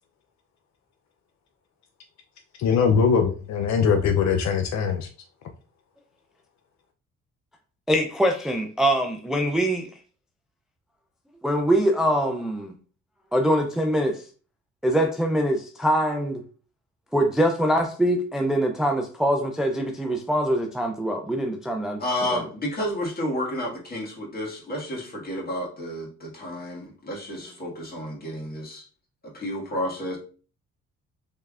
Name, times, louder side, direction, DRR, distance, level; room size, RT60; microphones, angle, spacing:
voice 1, 2.6-5.1, left 6 dB, 65° left, 5 dB, 0.5 m, -21 dB
voice 2, 7.9-9.9 11.4-12.7 13.3-14.2 14.8-16.4 17.1-22.0 22.3-22.4, equal, ahead, 4 dB, 0.4 m, -23 dB
voice 3, 22.0-28.8 29.2-30.2, left 1 dB, 30° left, -3 dB, 1.7 m, -31 dB
3.5 x 3.1 x 2.4 m, 0.38 s
cardioid pair, 90°, 30 cm